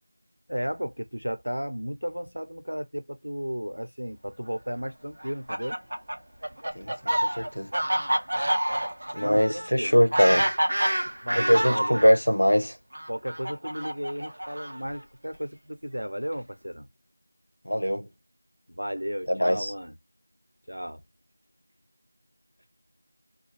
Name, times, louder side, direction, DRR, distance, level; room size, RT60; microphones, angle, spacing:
voice 1, 0.5-5.8 9.2-10.0 11.2-12.0 13.1-16.9 18.7-20.0 20.7-21.0, equal, 85° right, 0.8 m, -34 dB
Fowl, 5.2-12.1 12.9-15.0, right 1 dB, 50° right, 0.6 m, -28 dB
voice 2, 6.8-7.7 9.1-10.5 11.3-12.8 17.7-18.1 19.3-19.7, equal, 85° left, 0.8 m, -22 dB
2.4 x 2.3 x 3.2 m
figure-of-eight pair, 175°, 0 cm